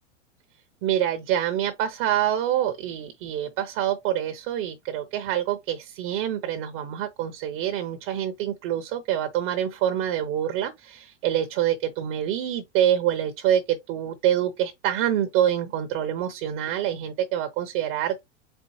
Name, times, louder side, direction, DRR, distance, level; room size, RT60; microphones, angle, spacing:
voice 1, 0.8-18.2, right 11 dB, 50° right, 0.9 m, -26 dB
4.5 x 4.0 x 2.7 m
hypercardioid pair, 100°, 36 cm